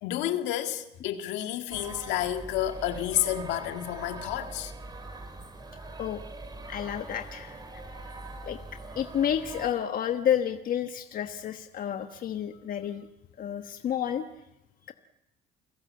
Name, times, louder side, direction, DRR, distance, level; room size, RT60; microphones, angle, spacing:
voice 1, 0.0-4.7, left 12 dB, 85° left, 1.9 m, -30 dB
sound 1, 1.7-9.7, right 2 dB, 25° right, 3.2 m, -42 dB
voice 2, 6.7-7.8 8.4-13.1 13.4-14.2 14.8-14.9, left 9 dB, 50° left, 1.3 m, -30 dB
29.5 x 17.0 x 7.7 m
cardioid pair, 105°, 18 cm